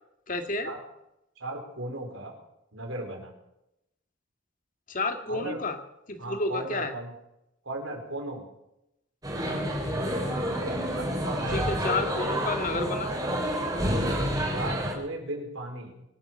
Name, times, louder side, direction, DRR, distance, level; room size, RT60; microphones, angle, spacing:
voice 1, 0.3-0.7 4.9-5.8 6.1-6.9 11.5-13.1, left 3 dB, 40° left, 6 dB, 2.0 m, -30 dB
voice 2, 1.4-2.3 2.7-3.3 5.3-5.6 6.2-7.1 7.6-8.5 10.6-11.8 13.8-14.0 14.4-16.0, right 2 dB, 85° right, 2 dB, 4.7 m, -36 dB
sound 1, 9.2-14.9, equal, 20° right, 4.0 m, -29 dB
24.5 x 9.0 x 6.5 m, 0.86 s
head